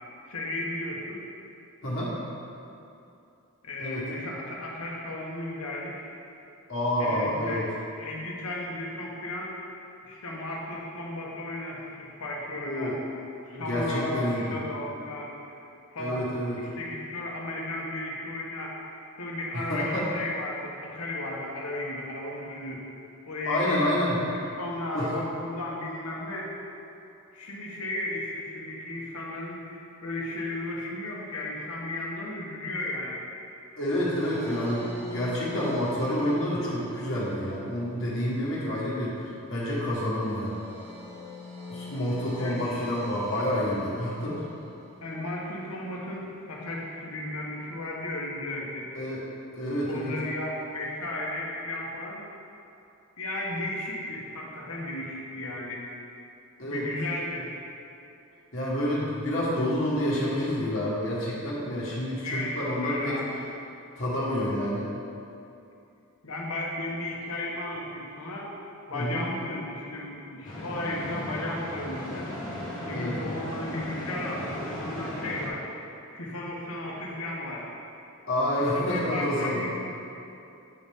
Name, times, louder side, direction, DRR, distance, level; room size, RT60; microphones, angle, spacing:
voice 1, 0.2-1.2 3.6-6.1 7.0-9.5 10.0-13.0 13.5-15.5 15.9-16.3 16.6-18.7 19.2-22.8 23.2-23.8 24.3-26.5 27.3-33.2 42.4-42.9 45.0-48.9 49.9-52.2 53.2-55.9 56.6-57.5 62.2-63.3 66.2-68.5 68.9-72.3 72.8-77.7 78.6-79.8, left 1 dB, 80° left, -2 dB, 1.1 m, -34 dB
voice 2, 1.8-2.1 3.8-4.0 6.7-7.6 12.5-12.9 13.5-14.6 16.0-16.6 19.7-20.1 23.4-24.2 24.9-25.1 33.8-40.6 41.7-44.4 48.9-49.2 49.5-50.1 56.6-56.8 58.5-63.2 64.0-64.9 68.9-69.2 72.9-73.3 78.3-79.6, left 1 dB, 60° left, -7 dB, 1.5 m, -28 dB
sound 1, 33.9-45.3, right 1 dB, 25° right, 0.9 m, -43 dB
sound 2, 70.4-75.5, left 1 dB, 35° left, 1.1 m, -36 dB
8.7 x 4.1 x 3.6 m, 2.7 s
head